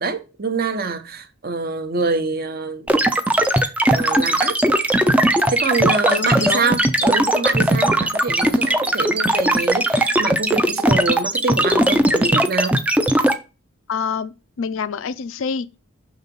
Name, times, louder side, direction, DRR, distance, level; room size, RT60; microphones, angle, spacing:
voice 1, 0.0-3.1 3.6-4.6 5.5-12.8, right 4 dB, 45° right, 0.8 m, -25 dB
sound 1, 2.9-13.3, right 1 dB, 5° right, 0.4 m, -18 dB
voice 2, 6.1-6.7 13.9-15.8, left 6 dB, 65° left, 0.4 m, -27 dB
5.9 x 4.0 x 5.3 m
head